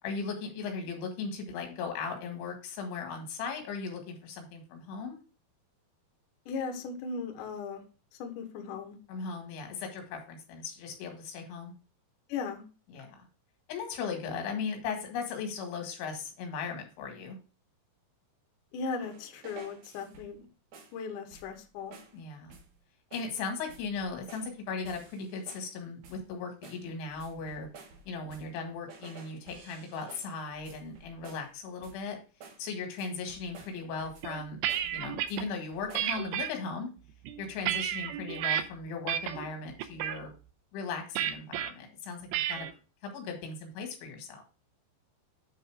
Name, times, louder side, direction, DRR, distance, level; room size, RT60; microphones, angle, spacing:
voice 1, 0.0-5.2 9.1-11.7 12.9-13.2 13.7-17.4 22.1-22.6 23.1-27.7 28.1-32.2 32.6-34.6 34.9-36.9 37.4-40.3 40.7-42.2 42.5-42.7 43.0-44.4, left 5 dB, 85° left, 4 dB, 4.2 m, -37 dB
voice 2, 6.5-7.8 8.2-9.0 12.3-12.6 18.7-20.5 20.9-21.9, left 5 dB, 70° left, 4 dB, 2.1 m, -37 dB
sound 1, 19.0-20.4 20.7-21.0 21.3-21.6 21.9-22.2 22.5-22.8 23.1-23.4 23.7-24.6 24.8-25.7 26.0-26.3 26.6-28.6 28.9-31.5 31.8-32.1 32.4-32.7 33.0-34.4 34.7-35.4 35.7-36.2, right 4 dB, 60° right, 2.2 m, -52 dB
sound 2, 34.2-35.4 35.9-36.5 37.1-38.6 39.1-39.5 39.8-40.2 41.2-41.7 42.3-42.7, right 11 dB, 85° right, 2.7 m, -31 dB
9.2 x 3.9 x 4.8 m, 0.34 s
omnidirectional pair, 5.2 m